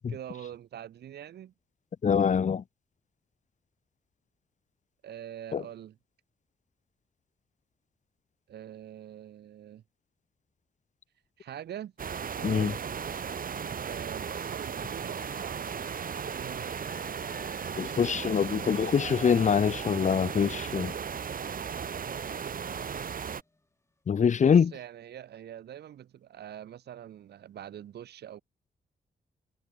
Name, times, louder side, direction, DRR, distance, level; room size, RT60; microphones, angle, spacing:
voice 1, 0.1-1.5 5.0-6.0 8.5-9.8 11.4-11.9 12.3-12.8 13.7-15.8 16.3-16.8 24.4-28.4, right 10 dB, 80° right, 3.2 m, -44 dB
voice 2, 2.0-2.6 5.5-5.6 12.4-12.7 17.8-20.9 24.1-24.7, left 7 dB, 45° left, 0.9 m, -24 dB
sound 1, 12.0-23.4, right 7 dB, 55° right, 3.1 m, -36 dB
sound 2, 14.1-23.6, left 2 dB, 15° left, 7.7 m, -53 dB
cardioid pair, 70°, 17 cm